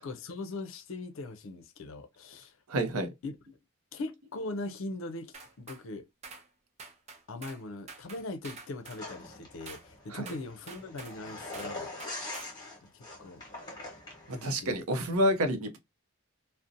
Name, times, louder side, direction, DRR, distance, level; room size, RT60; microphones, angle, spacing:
voice 1, 0.0-2.6 3.2-3.4 3.9-6.0 7.3-11.9 12.9-13.4 14.3-14.8, left 2 dB, 60° left, 0.4 m, -40 dB
voice 2, 2.7-3.1 10.1-10.3 14.3-15.8, equal, 80° right, 0.6 m, -29 dB
sound 1, 5.3-5.8 6.2-6.5 6.8-7.6 7.9-9.0 9.7-9.9 10.3-11.2 11.5-11.8 12.0-12.6, right 4 dB, 30° right, 0.4 m, -47 dB
sound 2, 9.0-14.5, left 2 dB, 20° left, 1.0 m, -43 dB
2.6 x 2.0 x 2.5 m
head